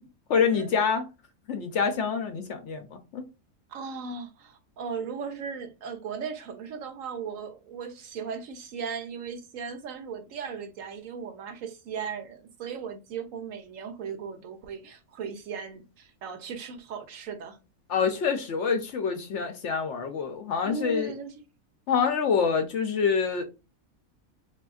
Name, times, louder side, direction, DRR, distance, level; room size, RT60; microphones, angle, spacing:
voice 1, 0.3-1.1 1.5-3.2 17.9-21.1 21.9-23.4, left 6 dB, 65° left, 0.9 m, -26 dB
voice 2, 3.7-17.6 20.6-21.3, right 5 dB, 75° right, 1.1 m, -37 dB
3.4 x 2.8 x 2.3 m
omnidirectional pair, 1.5 m